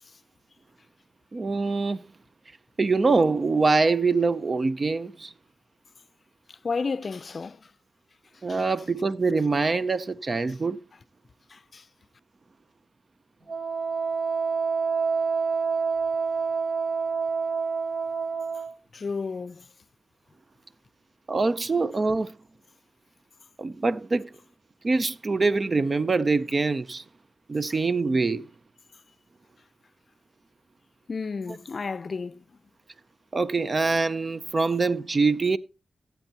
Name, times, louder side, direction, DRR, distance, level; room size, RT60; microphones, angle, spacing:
voice 1, 1.3-2.0 2.8-5.3 8.4-10.8 21.3-22.3 23.6-24.3 24.8-27.0 27.5-28.4 33.3-35.6, right 3 dB, 40° right, 0.4 m, -24 dB
voice 2, 6.5-7.6 8.5-8.6 11.5-11.8 18.9-19.7 31.1-32.4, left 4 dB, 55° left, 0.5 m, -32 dB
Wind instrument woodwind instrument, 13.5-18.7, right 5 dB, 70° right, 3.5 m, -27 dB
17.5 x 8.1 x 2.8 m
cardioid pair, 70°, 0 cm